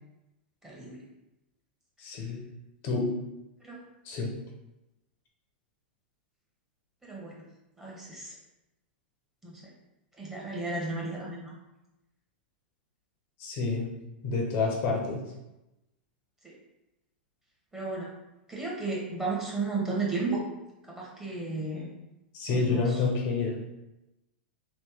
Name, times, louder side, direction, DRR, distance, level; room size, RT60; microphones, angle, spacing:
voice 1, 0.6-1.0 3.6-3.8 7.0-7.4 7.8-8.3 9.4-9.6 10.2-11.5 16.4-16.5 17.7-18.1 18.5-20.4 20.9-21.9 22.5-23.0, right 3 dB, 10° right, -4 dB, 1.2 m, -33 dB
voice 2, 2.0-2.4 2.8-3.0 4.1-4.3 13.4-13.9 14.2-15.2 22.3-23.5, left 4 dB, 45° left, -1 dB, 0.8 m, -28 dB
3.1 x 2.6 x 3.5 m, 0.95 s
hypercardioid pair, 105°, 6 cm